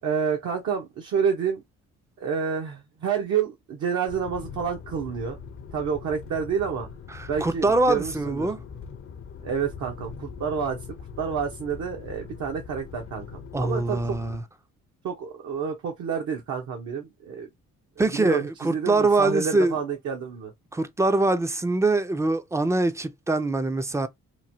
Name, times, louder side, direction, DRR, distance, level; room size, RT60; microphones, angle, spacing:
voice 1, 0.0-1.6 2.2-5.4 5.7-6.9 7.3-8.5 9.4-10.8 11.2-14.2 15.0-17.5 18.1-20.5, right 7 dB, 65° right, 0.8 m, -29 dB
sound 1, 4.1-14.4, left 6 dB, 45° left, 0.5 m, -41 dB
voice 2, 7.1-8.6 13.5-14.4 18.0-19.7 20.7-24.1, right 2 dB, 10° right, 0.3 m, -23 dB
3.0 x 2.1 x 2.6 m
cardioid pair, 90°, 30 cm